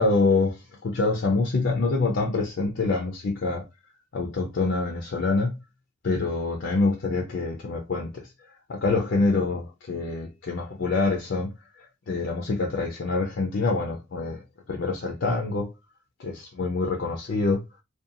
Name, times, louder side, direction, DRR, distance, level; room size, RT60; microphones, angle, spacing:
voice 1, 0.0-3.7 4.1-5.5 6.0-8.3 8.7-15.7 16.2-17.6, left 3 dB, 55° left, 0.4 m, -26 dB
2.5 x 2.2 x 2.6 m
head